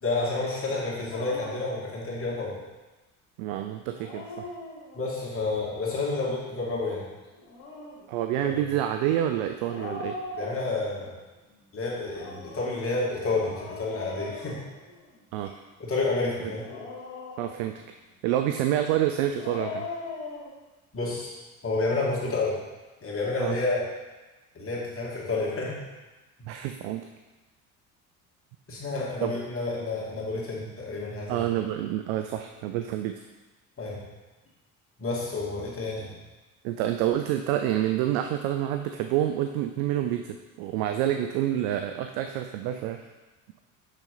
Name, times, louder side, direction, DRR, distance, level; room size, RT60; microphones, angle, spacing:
voice 1, 0.0-2.6 4.9-7.0 8.3-8.8 10.3-11.1 11.7-14.6 15.8-16.7 20.9-21.3 21.6-22.6 23.0-23.9 24.5-25.8 28.7-31.4 33.8-34.0 35.0-36.2, left 3 dB, 30° left, -4 dB, 2.4 m, -30 dB
Dog, 1.1-1.7 3.8-5.2 7.3-8.1 9.6-11.1 12.0-15.2 16.4-17.8 19.2-20.5, left 3 dB, 50° left, 2.3 m, -40 dB
voice 2, 3.4-4.5 8.1-10.1 15.3-15.5 16.4-16.5 17.4-17.7 18.2-19.9 23.4-23.6 26.4-27.1 29.2-29.3 31.3-33.2 36.6-43.1, right 12 dB, 50° right, 6 dB, 0.5 m, -28 dB
6.4 x 6.4 x 4.0 m, 1.2 s
figure-of-eight pair, 55°, 44 cm